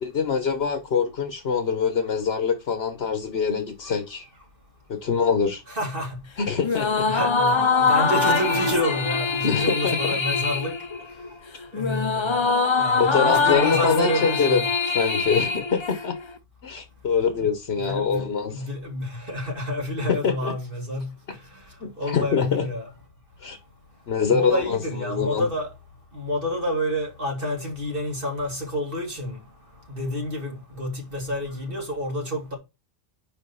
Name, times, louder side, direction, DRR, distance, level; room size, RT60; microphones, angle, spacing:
voice 1, 0.0-4.3 4.9-5.6 6.4-7.1 9.4-10.2 13.0-16.1 16.6-18.7 20.1-20.5 21.8-22.7 23.4-23.6 24.1-25.5, left 6 dB, 75° left, 1.2 m, -24 dB
voice 2, 5.7-6.2 7.0-10.8 11.7-12.4 12.8-14.6 17.7-18.2 18.5-21.6 22.0-22.9 24.3-25.7 26.1-29.4 29.9-32.6, left 1 dB, 60° right, 2.5 m, -29 dB
sound 1, 6.6-16.3, left 4 dB, 35° left, 0.6 m, -23 dB
5.4 x 5.2 x 5.5 m
omnidirectional pair, 1.1 m